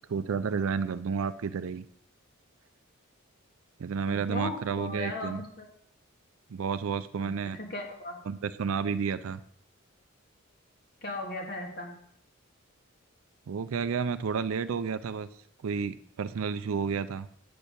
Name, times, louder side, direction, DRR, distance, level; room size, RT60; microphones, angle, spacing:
voice 1, 0.1-1.8 3.8-5.4 6.5-7.6 8.3-9.4 13.5-15.3 15.6-17.3, right 6 dB, 75° right, 11 dB, 0.4 m, -31 dB
voice 2, 4.1-5.7 7.2-8.2 11.0-11.9, left 2 dB, 45° left, 1 dB, 1.9 m, -37 dB
8.5 x 4.5 x 6.7 m, 0.67 s
head